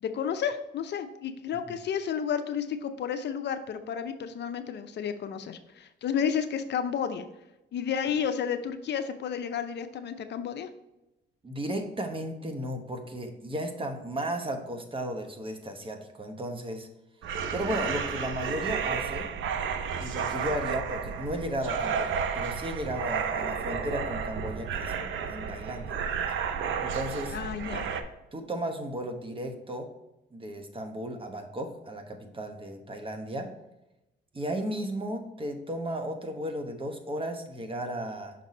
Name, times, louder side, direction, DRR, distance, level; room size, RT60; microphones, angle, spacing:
voice 1, 0.0-7.3 7.7-10.7 27.3-27.8, left 7 dB, 60° left, 9 dB, 0.6 m, -31 dB
voice 2, 11.4-16.9 17.5-19.3 20.0-26.0 26.8-27.4 28.3-29.9 30.3-33.5 34.3-38.3, right 1 dB, 25° right, 5 dB, 1.0 m, -34 dB
sound 1, 17.2-28.0, right 6 dB, 75° right, 0.6 m, -32 dB
6.0 x 4.1 x 4.1 m, 0.92 s
cardioid pair, 90°, 20 cm